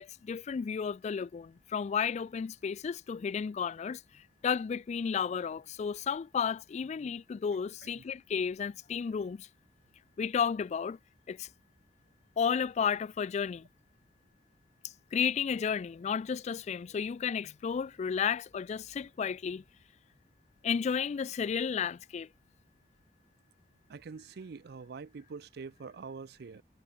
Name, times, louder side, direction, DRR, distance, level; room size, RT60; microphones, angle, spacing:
voice 1, 0.0-9.5 10.2-11.0 11.3-11.5 12.4-13.7 15.1-19.6 20.6-22.3, left 6 dB, 40° left, 0.3 m, -32 dB
voice 2, 23.9-26.6, right 5 dB, 60° right, 0.5 m, -45 dB
head